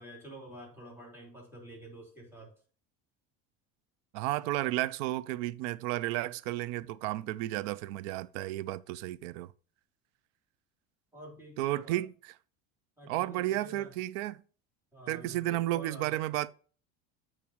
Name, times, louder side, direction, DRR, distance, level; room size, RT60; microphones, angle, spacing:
voice 1, 0.0-2.5 11.1-12.0 13.0-14.0 14.9-16.2, right 1 dB, 5° right, 3.2 m, -48 dB
voice 2, 4.1-9.5 11.6-12.3 13.1-14.4 15.1-16.5, right 15 dB, 80° right, 0.5 m, -33 dB
8.7 x 4.9 x 3.0 m
supercardioid pair, 120°, 36 cm